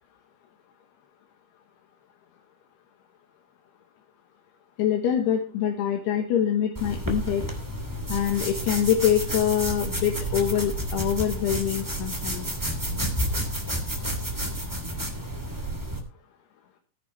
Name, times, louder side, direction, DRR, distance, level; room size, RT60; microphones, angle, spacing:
voice 1, 4.8-7.4 8.1-12.5, left 9 dB, 85° left, 3 dB, 3.4 m, -25 dB
sound 1, 6.8-16.0, right 1 dB, 5° right, 1.7 m, -30 dB
16.0 x 11.0 x 3.3 m, 0.38 s
omnidirectional pair, 4.6 m